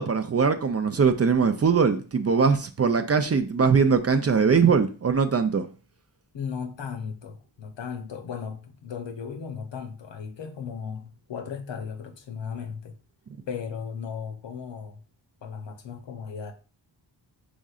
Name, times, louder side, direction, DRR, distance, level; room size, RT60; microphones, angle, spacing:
voice 1, 0.0-5.7, right 5 dB, 35° right, 0.4 m, -21 dB
voice 2, 6.3-12.9 13.5-15.0 15.4-16.5, left 6 dB, 70° left, 0.8 m, -36 dB
5.1 x 3.7 x 2.4 m
cardioid pair, 60°, 46 cm